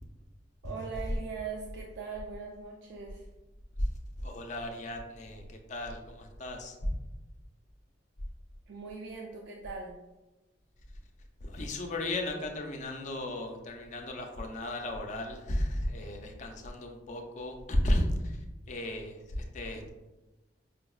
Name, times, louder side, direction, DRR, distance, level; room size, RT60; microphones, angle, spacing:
voice 1, 0.6-3.2 8.7-10.0, right 5 dB, 60° right, -1 dB, 0.4 m, -40 dB
voice 2, 4.2-7.0 11.4-19.9, left 1 dB, 40° left, 3 dB, 0.4 m, -34 dB
5.0 x 2.0 x 2.3 m, 1.1 s
head